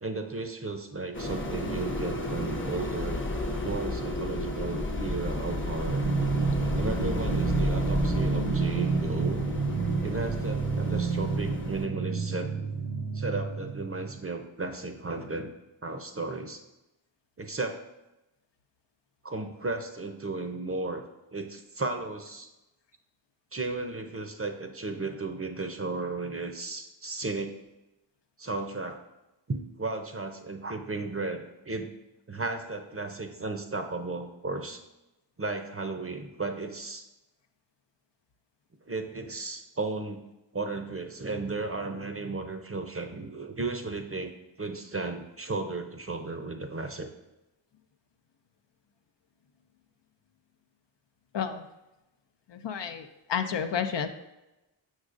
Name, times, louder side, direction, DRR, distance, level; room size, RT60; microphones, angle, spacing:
voice 1, 0.0-3.3 3.6-6.0 6.8-9.4 10.0-12.5 13.1-15.5 15.8-16.6 17.4-17.8 19.2-21.0 21.3-22.5 23.5-27.5 28.4-29.0 29.5-31.9 32.3-34.8 35.4-37.1 38.9-40.2 40.5-44.3 44.6-47.1, right 3 dB, 30° right, 5 dB, 0.6 m, -34 dB
sound 1, 1.1-11.9, left 2 dB, 25° left, 0.8 m, -32 dB
sound 2, 5.9-14.2, right 4 dB, 85° right, 0.7 m, -29 dB
voice 2, 52.5-54.1, left 7 dB, 60° left, 8 dB, 0.5 m, -31 dB
6.4 x 6.1 x 2.5 m, 0.97 s
cardioid pair, 50°, 48 cm